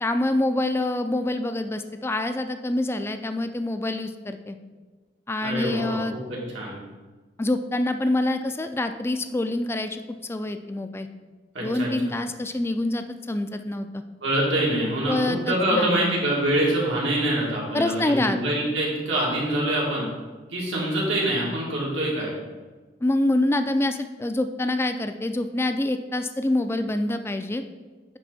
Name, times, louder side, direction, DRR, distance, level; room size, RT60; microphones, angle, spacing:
voice 1, 0.0-4.6 5.3-6.2 7.4-11.1 11.6-14.0 15.1-16.1 17.7-18.4 23.0-27.6, left 1 dB, 15° left, 8 dB, 0.3 m, -26 dB
voice 2, 5.4-6.7 11.5-11.9 14.2-20.1 20.5-22.3, right 1 dB, 90° right, -4 dB, 2.2 m, -25 dB
10.0 x 3.6 x 4.1 m, 1.3 s
head